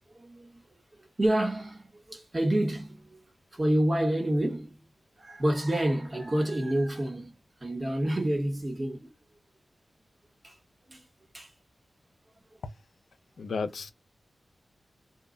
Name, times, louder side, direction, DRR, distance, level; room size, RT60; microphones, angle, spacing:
voice 1, 0.2-0.5 1.0-3.2 3.5-4.8 5.2-7.3 7.6-9.1 10.4-10.5 10.9-11.0 11.3-11.5, right 1 dB, 30° right, 1.0 m, -28 dB
voice 2, 13.4-13.9, left 4 dB, 85° left, 0.5 m, -33 dB
2.2 x 2.0 x 3.6 m
wide cardioid pair, 145°, 0 cm